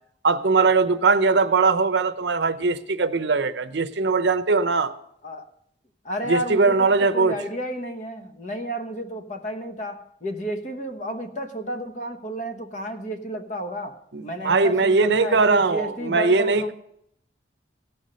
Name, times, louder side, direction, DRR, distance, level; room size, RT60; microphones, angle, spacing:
voice 1, 0.2-4.9 6.3-7.4 14.1-16.7, right 4 dB, 70° right, 0.7 m, -20 dB
voice 2, 6.0-16.7, equal, 40° left, 1.0 m, -32 dB
16.5 x 5.9 x 5.2 m
head